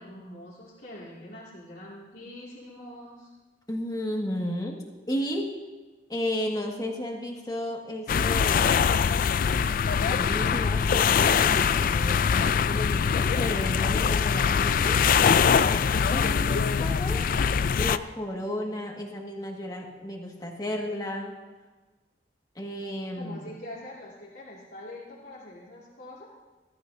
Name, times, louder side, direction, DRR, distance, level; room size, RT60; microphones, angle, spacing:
voice 1, 0.0-3.3 23.2-26.3, left 1 dB, 70° left, -8 dB, 2.4 m, -44 dB
voice 2, 3.7-5.5 6.1-8.8 10.0-15.0 15.7-17.3 17.8-21.3 22.6-23.4, left 1 dB, 20° left, 0 dB, 1.8 m, -33 dB
sound 1, 8.1-18.0, left 6 dB, 50° left, 0.3 m, -23 dB
20.5 x 12.5 x 2.7 m, 1.3 s
head